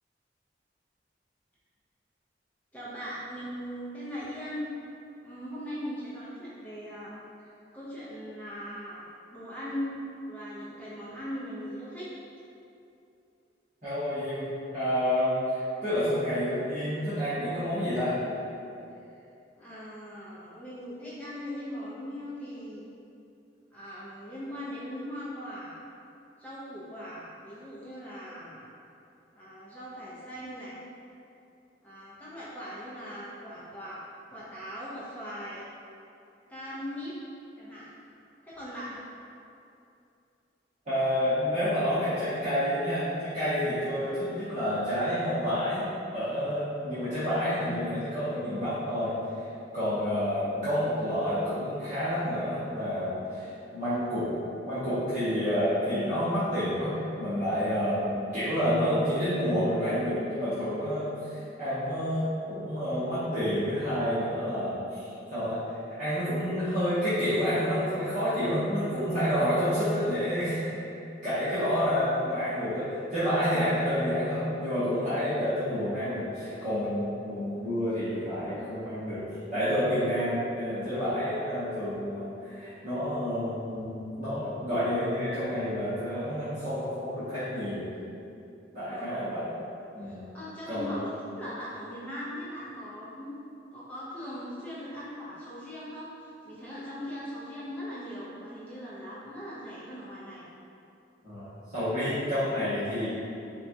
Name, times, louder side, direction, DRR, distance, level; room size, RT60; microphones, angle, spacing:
voice 1, 2.7-4.7 5.2-9.9 10.2-12.1 19.0-19.1 19.6-22.9 23.7-25.8 26.4-28.7 29.3-30.8 31.8-34.0 34.3-35.7 36.5-37.1 37.6-37.9 38.4-39.0 88.9-89.4 90.0-93.3 93.7-100.5, equal, 10° left, -9 dB, 0.5 m, -40 dB
voice 2, 13.8-14.4 14.7-18.2 40.9-49.2 49.7-54.3 54.6-61.2 61.6-70.7 71.2-79.2 79.5-87.9 88.7-89.5 89.9-90.2 90.7-91.0 101.2-103.1, equal, 40° right, -17 dB, 1.0 m, -29 dB
4.1 x 2.2 x 2.6 m, 2.7 s
head